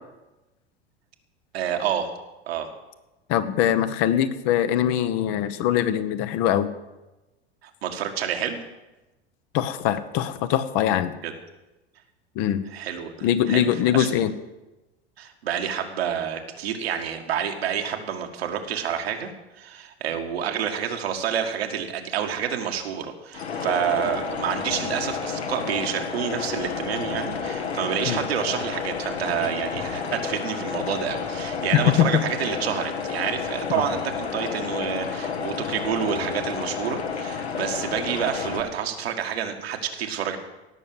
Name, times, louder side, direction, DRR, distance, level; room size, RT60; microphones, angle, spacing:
voice 1, 1.5-2.2 2.5-2.7 7.6-8.6 11.2-11.3 12.7-14.1 15.2-19.3 19.6-40.4, right 8 dB, 70° right, 4 dB, 1.9 m, -28 dB
voice 2, 3.3-6.7 9.5-11.1 12.4-12.6 13.2-14.3 28.1-28.2 31.9-32.0, left 10 dB, 50° left, 11 dB, 1.1 m, -22 dB
sound 1, 23.3-38.6, left 6 dB, 80° left, 1.9 m, -31 dB
17.5 x 6.6 x 7.9 m, 1.0 s
figure-of-eight pair, 85°, 32 cm